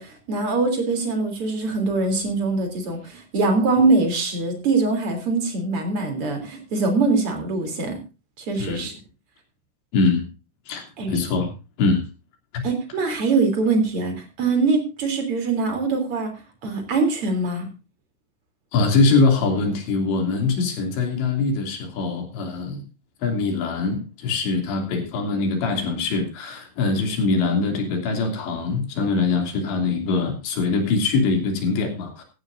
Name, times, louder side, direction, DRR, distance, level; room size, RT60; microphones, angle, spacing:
voice 1, 0.0-8.0 8.4-8.9 11.0-11.2 12.6-16.3 16.6-17.7, right 3 dB, 35° right, 5 dB, 3.8 m, -23 dB
voice 2, 8.6-8.9 9.9-10.3 10.7-11.5 11.8-12.1 12.5-12.7 18.7-22.8 23.2-32.2, left 3 dB, 85° left, 4 dB, 5.2 m, -23 dB
15.5 x 15.0 x 2.6 m, 0.30 s
omnidirectional pair, 4.9 m